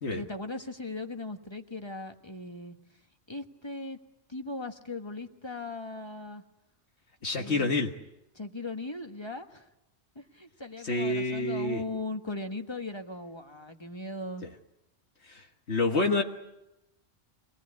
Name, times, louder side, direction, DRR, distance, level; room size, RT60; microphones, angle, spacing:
voice 1, 0.1-2.8 3.3-4.0 4.3-6.4 7.3-7.7 8.3-9.7 10.1-14.5, left 2 dB, 25° left, 6 dB, 1.4 m, -38 dB
voice 2, 7.2-7.9 10.8-11.8 15.2-16.2, left 2 dB, 70° left, 3 dB, 1.7 m, -28 dB
25.5 x 18.5 x 9.6 m, 0.93 s
omnidirectional pair, 1.1 m